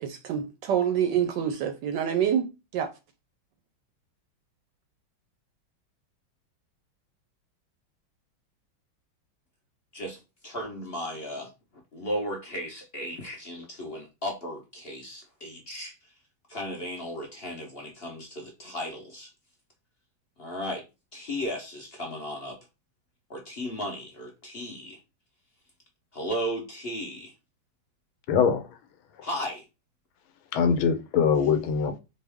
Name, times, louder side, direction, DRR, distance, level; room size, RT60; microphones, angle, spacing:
voice 1, 0.0-2.9, right 9 dB, 75° right, 1.0 m, -27 dB
voice 2, 9.9-11.5 11.9-15.9 16.5-19.3 20.4-20.8 21.1-22.6 23.3-25.0 26.1-27.3 29.2-29.6, equal, 50° left, 0.7 m, -35 dB
voice 3, 28.3-28.7 30.5-32.0, left 6 dB, 85° left, 1.5 m, -23 dB
4.4 x 2.6 x 3.4 m
omnidirectional pair, 2.3 m